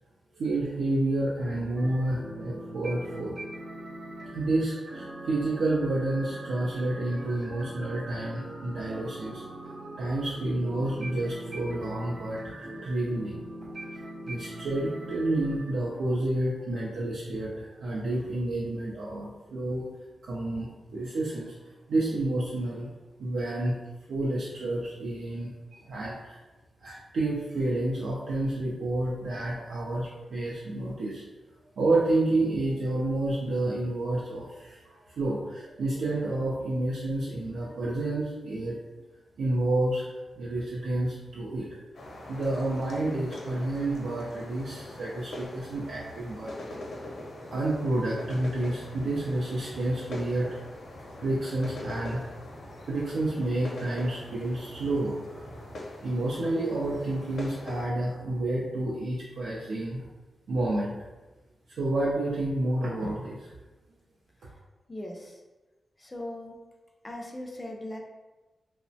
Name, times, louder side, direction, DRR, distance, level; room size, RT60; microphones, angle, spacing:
voice 1, 0.3-3.4 3.8-3.9 4.3-9.4 10.0-13.4 14.2-19.9 20.2-21.5 21.9-22.9 23.2-23.8 24.1-26.4 26.8-31.2 31.8-38.7 39.4-41.7 42.3-46.5 47.5-50.6 51.2-52.2 52.9-55.5 56.0-60.1 60.5-60.9 61.8-63.5, right 2 dB, 90° right, -6 dB, 0.4 m, -29 dB
sound 1, 1.8-15.7, right 1 dB, 45° right, 0.6 m, -41 dB
sound 2, 41.9-57.9, left 1 dB, 75° left, 0.5 m, -42 dB
voice 2, 64.9-65.4 66.0-66.6 67.0-68.0, left 1 dB, 20° left, 1 dB, 0.3 m, -39 dB
2.9 x 2.0 x 2.6 m, 1.2 s
wide cardioid pair, 105°, 0 cm